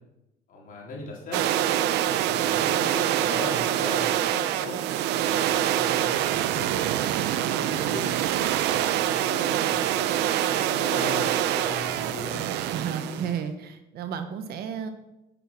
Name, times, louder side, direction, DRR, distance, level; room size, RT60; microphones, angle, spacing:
voice 1, 0.5-1.4 2.0-4.8 5.2-8.1 8.6-10.2 10.4-12.4, left 2 dB, 55° left, -3 dB, 3.7 m, -39 dB
sound 1, 1.3-13.3, right 11 dB, 85° right, 0.6 m, -25 dB
voice 2, 12.7-14.9, right 7 dB, 70° right, 8 dB, 1.2 m, -32 dB
9.0 x 7.5 x 6.0 m, 0.93 s
cardioid pair, 110°, 17 cm